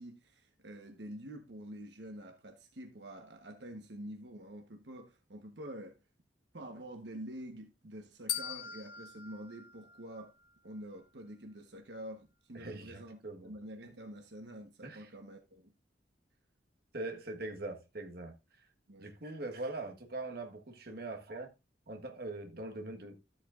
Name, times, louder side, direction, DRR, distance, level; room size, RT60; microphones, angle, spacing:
voice 1, 0.0-6.0 6.5-10.3 10.6-15.7 18.9-19.1, right 1 dB, 75° right, 1.2 m, -47 dB
sound 1, 8.3-10.5, left 9 dB, 55° left, 1.5 m, -41 dB
voice 2, 12.5-13.5 14.8-15.1 16.9-18.3 19.0-21.5 21.9-23.2, right 2 dB, 60° right, 1.5 m, -42 dB
13.0 x 7.7 x 2.5 m
head